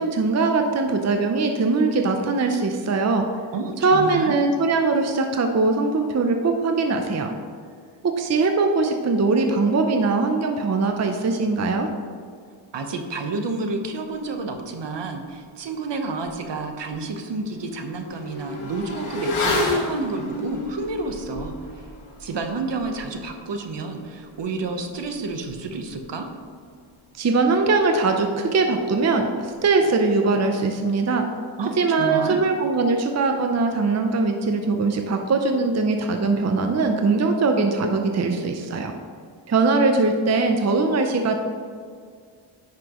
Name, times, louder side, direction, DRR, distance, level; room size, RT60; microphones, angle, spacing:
voice 1, 0.0-3.3 3.8-7.3 8.0-11.9 27.1-31.3 31.8-38.9 39.5-41.3, right 3 dB, 35° right, 4 dB, 0.6 m, -21 dB
voice 2, 3.5-4.4 12.7-21.9 22.2-26.3 31.6-32.4, right 3 dB, 60° right, 5 dB, 1.0 m, -30 dB
Motorcycle / Accelerating revving vroom, 16.3-16.4 16.7-26.8 27.0-27.1, left 2 dB, 90° left, 1.7 m, -32 dB
9.9 x 5.9 x 3.0 m, 2.1 s
wide cardioid pair, 110°, 49 cm